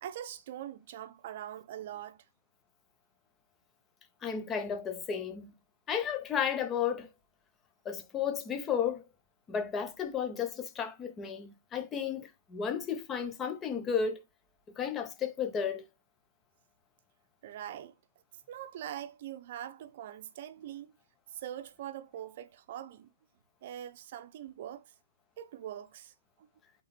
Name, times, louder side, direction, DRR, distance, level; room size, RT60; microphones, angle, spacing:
voice 1, 0.0-2.2 17.4-17.9 18.5-20.9 21.3-23.1 23.6-24.9 25.4-26.1 26.4-26.5, right 11 dB, 40° right, 0.9 m, -43 dB
voice 2, 4.2-5.5 5.9-7.1 7.8-9.1 9.5-14.2 14.8-15.9, left 7 dB, 10° left, 1.0 m, -33 dB
8.4 x 3.9 x 4.2 m
hypercardioid pair, 170°, 0 cm